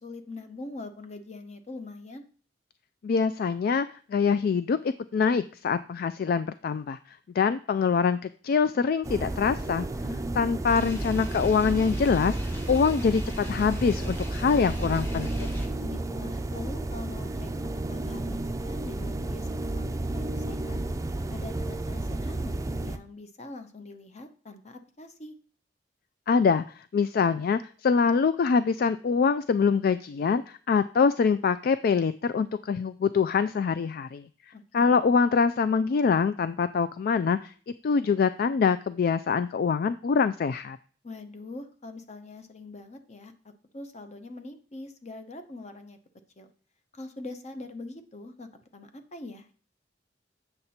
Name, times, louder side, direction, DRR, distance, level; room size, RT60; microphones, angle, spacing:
voice 1, 0.0-2.2 10.0-10.3 15.8-17.5 17.9-20.8 21.3-25.4 34.5-35.0 41.0-43.3 43.7-46.0 46.4-46.5 46.9-49.5, left 2 dB, 40° left, 8 dB, 1.0 m, -43 dB
voice 2, 3.0-9.9 10.4-12.4 12.7-15.5 26.3-34.2 34.7-37.5 37.8-40.8, left 5 dB, 55° left, 13 dB, 0.3 m, -24 dB
sound 1, 9.0-23.0, right 2 dB, 20° right, 0.5 m, -32 dB
sound 2, 10.6-15.7, right 1 dB, 15° left, 1.5 m, -35 dB
8.1 x 6.7 x 4.2 m, 0.43 s
head